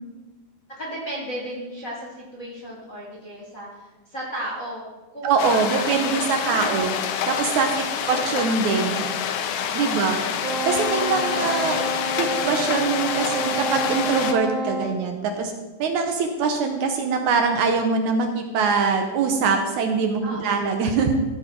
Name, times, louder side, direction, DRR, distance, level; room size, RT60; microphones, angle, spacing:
voice 1, 0.7-4.8 5.1-5.9 6.2-7.0 7.6-8.9 9.5-10.6 11.2-11.4 20.2-20.6, right 1 dB, 35° left, -5 dB, 1.5 m, -35 dB
voice 2, 5.2-6.9 7.3-9.0 9.7-10.2 10.6-11.8 12.2-15.5 15.8-21.1, right 5 dB, 70° right, 4 dB, 2.1 m, -23 dB
sound 1, 5.4-14.3, left 8 dB, 85° left, 2.5 m, -27 dB
Wind instrument woodwind instrument, 10.4-14.9, right 1 dB, 20° right, 3.6 m, -28 dB
13.5 x 7.2 x 4.6 m, 1.2 s
omnidirectional pair, 3.9 m